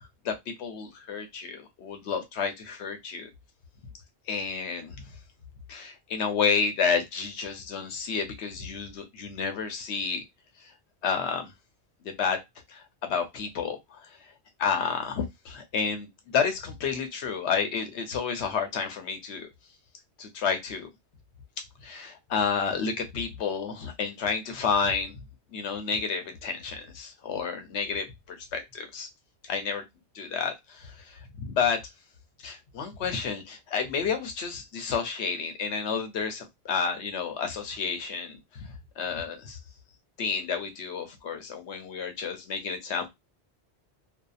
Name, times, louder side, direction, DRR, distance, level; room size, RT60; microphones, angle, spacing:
voice 1, 0.2-3.3 4.3-5.0 5.7-10.2 11.0-11.5 12.0-12.4 12.7-14.0 14.6-19.5 20.2-20.9 21.8-25.2 25.5-29.1 29.5-29.8 30.1-31.8 32.4-38.7 39.0-39.6 40.2-43.1, left 6 dB, 85° left, 1.0 m, -30 dB
2.7 x 2.3 x 2.3 m
omnidirectional pair, 1.1 m